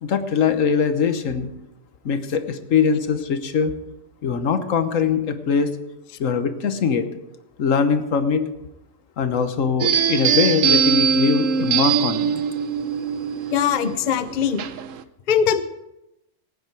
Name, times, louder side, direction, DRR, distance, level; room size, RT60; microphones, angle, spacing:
voice 1, 0.0-1.5 2.0-3.7 4.2-5.7 6.2-7.1 7.6-8.5 9.2-12.4, left 6 dB, 80° left, 9 dB, 1.4 m, -22 dB
sound 1, 9.8-15.0, right 7 dB, 75° right, 1.1 m, -22 dB
voice 2, 13.5-14.6 15.3-15.6, left 8 dB, 45° left, 11 dB, 0.7 m, -21 dB
18.0 x 9.3 x 4.6 m, 0.93 s
omnidirectional pair, 1.3 m